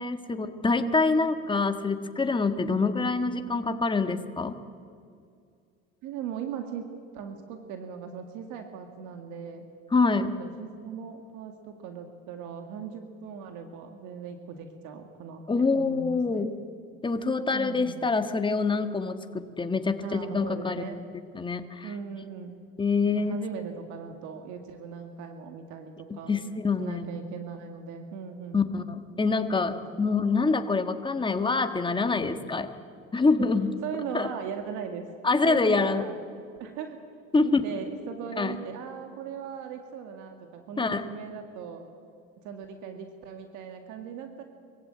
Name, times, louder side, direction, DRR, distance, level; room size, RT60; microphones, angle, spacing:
voice 1, 0.0-4.6 9.9-10.3 15.5-16.6 17.0-21.0 21.3-21.9 22.8-23.4 26.1-27.0 28.5-32.7 33.1-33.7 34.1-34.3 35.2-36.0 37.3-37.6 38.4-38.5 40.8-41.0, left 4 dB, 15° left, 8 dB, 1.5 m, -26 dB
voice 2, 6.0-6.9 7.1-9.7 10.1-16.5 17.5-18.0 20.0-21.0 21.8-22.6 23.1-26.3 26.8-28.6 30.3-30.4 33.8-35.1 35.4-36.2 36.6-37.0 37.4-41.9 42.4-44.4, right 7 dB, 75° right, 6 dB, 2.0 m, -39 dB
23.0 x 15.5 x 9.0 m, 2.3 s
cardioid pair, 110°, 30 cm